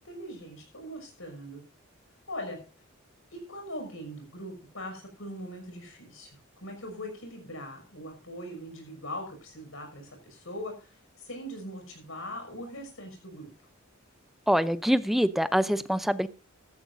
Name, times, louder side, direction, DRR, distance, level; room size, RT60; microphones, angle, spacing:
voice 1, 0.0-1.6 2.3-2.6 3.3-13.5, equal, 70° left, 4 dB, 5.9 m, -41 dB
voice 2, 14.5-16.3, equal, ahead, 14 dB, 0.5 m, -25 dB
15.5 x 13.0 x 2.6 m, 0.35 s
head